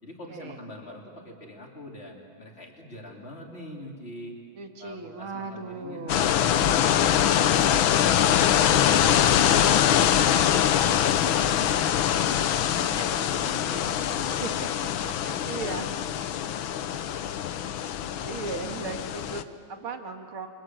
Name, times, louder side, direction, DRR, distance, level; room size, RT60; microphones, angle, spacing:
voice 1, 0.0-4.4 4.8-6.6 7.0-10.1 10.4-14.7 15.3-16.0 16.4-17.2, left 1 dB, 30° left, 0 dB, 3.7 m, -44 dB
voice 2, 4.6-6.3 13.0-13.1 14.4-14.7 15.0-15.9 18.2-20.5, right 4 dB, 85° right, 4 dB, 2.8 m, -37 dB
sound 1, 6.1-19.4, left 10 dB, 75° left, 1.6 m, -23 dB
28.5 x 25.5 x 7.8 m, 2.2 s
omnidirectional pair, 2.3 m